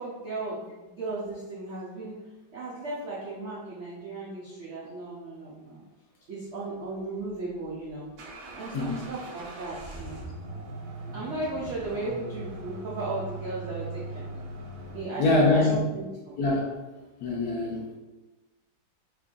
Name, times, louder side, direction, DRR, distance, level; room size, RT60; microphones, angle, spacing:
voice 1, 0.0-2.1 2.5-5.8 6.3-8.1 8.5-10.2 11.1-14.3 14.9-16.4, right 2 dB, 80° right, -6 dB, 0.6 m, -36 dB
sound 1, 7.2-15.0, right 2 dB, 65° right, 1.0 m, -40 dB
voice 2, 15.2-15.8 16.4-16.8 17.2-17.8, left 2 dB, 70° left, -2 dB, 1.0 m, -23 dB
3.1 x 2.5 x 3.6 m, 1.2 s
omnidirectional pair, 2.0 m